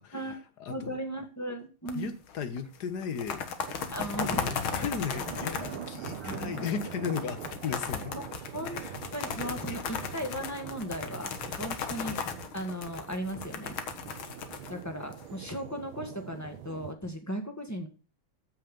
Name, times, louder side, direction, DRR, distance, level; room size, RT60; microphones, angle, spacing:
voice 1, 0.0-1.0 1.9-3.5 4.2-8.2 8.8-9.0 9.7-9.8, left 6 dB, 50° left, 1.6 m, -36 dB
voice 2, 0.7-2.1 3.9-4.5 6.2-6.7 8.1-8.2 8.5-8.8 9.1-12.2 12.5-13.8 14.7-17.9, right 1 dB, 10° left, 1.4 m, -36 dB
sound 1, 1.9-2.6 3.0-15.5, left 7 dB, 70° left, 2.2 m, -36 dB
sound 2, 3.5-17.0, right 9 dB, 70° right, 1.8 m, -44 dB
14.5 x 5.6 x 7.0 m
omnidirectional pair, 2.4 m